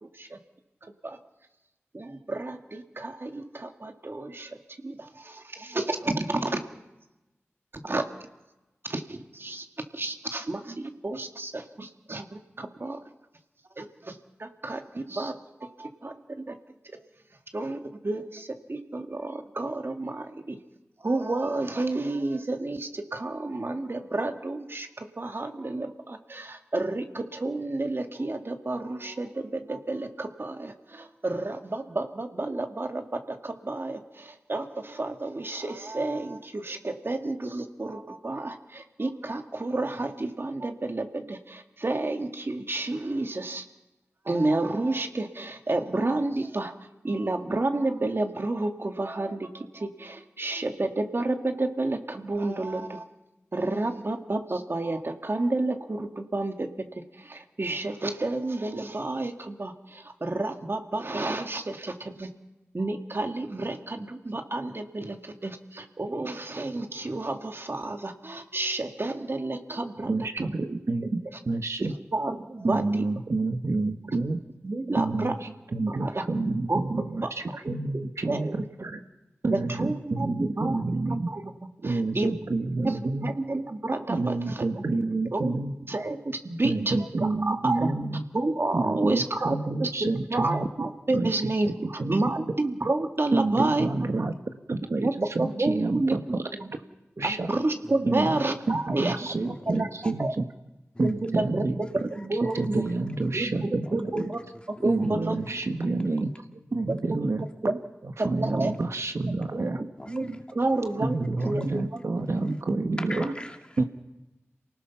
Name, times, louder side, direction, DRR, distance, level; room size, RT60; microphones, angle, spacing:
voice 1, 0.0-0.4 0.8-1.2 1.9-4.5 4.8-6.6 7.7-8.0 8.8-9.7 9.9-13.0 13.8-15.3 15.6-16.6 16.8-17.0 17.5-20.6 21.0-43.6 44.3-46.7 47.0-53.0 53.5-56.7 57.2-62.3 62.7-70.1 70.4-70.5 72.1-73.1 74.6-75.3 76.0-76.2 76.7-76.8 77.2-77.3 77.6-78.5 79.5-80.8 81.1-81.5 81.8-82.5 82.8-84.8 85.3-85.5 85.9-87.9 88.3-93.9 94.2-94.3 95.0-96.2 96.6-96.7 97.2-99.2 99.7-99.9 100.2-100.3 101.2-101.7 101.9-102.8 103.3-104.4 104.8-105.3 106.9-107.3 107.6-107.8 108.2-108.7 109.5-111.6 111.9-112.0 112.7-112.8 113.2-113.3, right 2 dB, 50° right, 5 dB, 2.0 m, -30 dB
voice 2, 70.0-71.9 72.6-74.4 75.0-79.0 79.4-81.3 81.8-83.3 84.1-85.7 86.6-88.2 88.7-90.7 91.1-91.3 92.0-92.4 93.3-94.3 94.7-96.4 97.2-97.5 98.1-98.4 98.7-100.5 101.0-101.8 102.5-103.8 104.1-104.3 104.8-106.3 106.7-107.5 108.0-109.8 111.0-113.3 113.8-113.9, right 3 dB, 70° right, 6 dB, 1.4 m, -28 dB
voice 3, 97.8-99.0 99.4-100.4 100.9-101.2 101.8-103.4 103.8-104.8 105.5-105.6 106.9-107.0 108.4-108.7 110.0-110.4 110.7-110.8 111.4-111.9 112.2-112.5 113.0-113.9, left 1 dB, 20° left, 4 dB, 2.5 m, -45 dB
28.0 x 19.0 x 6.0 m, 1.0 s
wide cardioid pair, 55°, 5 cm